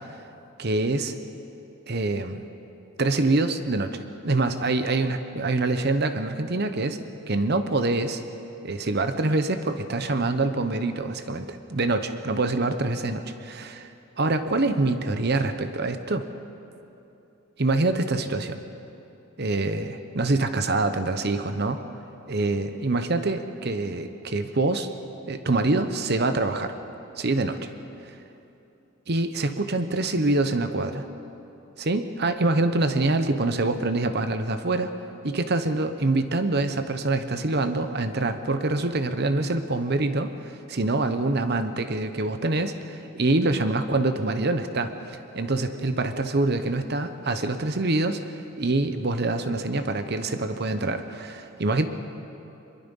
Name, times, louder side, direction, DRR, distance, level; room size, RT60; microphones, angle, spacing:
voice 1, 0.6-1.1 1.9-2.4 3.0-7.0 7.3-8.2 8.6-13.9 14.2-16.3 17.6-18.6 19.4-21.8 22.3-24.9 25.3-26.7 27.2-27.7 29.1-31.1 31.8-34.9 35.2-51.9, right 2 dB, 50° right, 9 dB, 0.9 m, -25 dB
24.0 x 22.0 x 5.5 m, 2.8 s
head